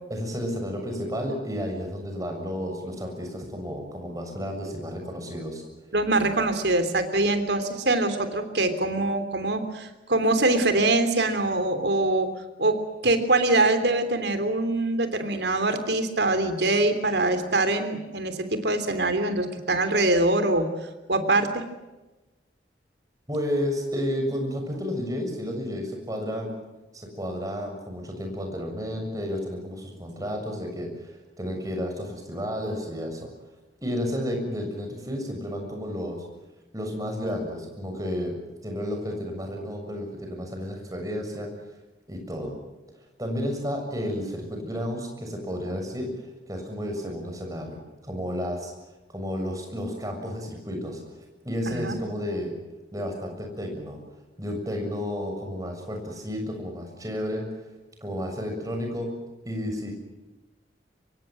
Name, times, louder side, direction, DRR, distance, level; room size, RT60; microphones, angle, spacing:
voice 1, 0.1-5.6 23.3-26.5 26.9-33.3 33.8-36.2 36.7-38.4 38.6-41.5 42.1-42.5 43.2-48.7 49.1-52.5 52.9-54.0 54.4-57.4 58.0-59.1 59.4-59.9, equal, 20° right, 3 dB, 7.0 m, -32 dB
voice 2, 5.9-12.3 12.6-20.7 21.1-21.6 51.7-52.0, right 2 dB, 70° right, 9 dB, 3.3 m, -24 dB
25.5 x 23.5 x 7.6 m, 1.1 s
head